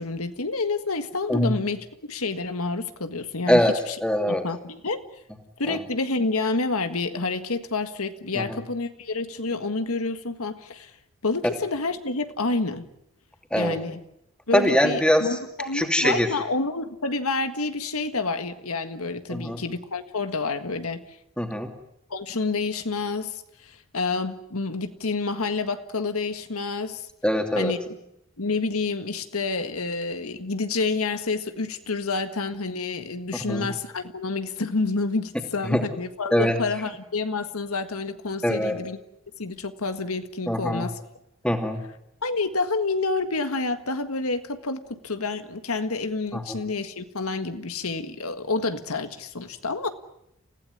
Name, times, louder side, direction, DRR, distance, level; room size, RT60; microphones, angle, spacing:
voice 1, 0.0-3.6 4.3-5.0 5.6-10.9 11.2-12.9 13.6-14.0 14.5-21.0 22.1-27.1 27.6-27.8 28.4-39.0 39.4-40.9 42.2-49.9, left 3 dB, 85° left, 9 dB, 1.7 m, -28 dB
voice 2, 4.0-4.4 5.7-5.8 8.3-8.6 13.5-13.8 14.5-15.4 15.7-16.3 19.3-19.6 21.4-21.7 27.2-27.7 33.4-33.7 35.6-35.8 36.3-36.6 38.4-38.8 40.5-40.9 41.4-41.8 46.3-46.4, equal, 5° left, 4 dB, 2.7 m, -23 dB
29.0 x 16.0 x 9.8 m, 0.80 s
head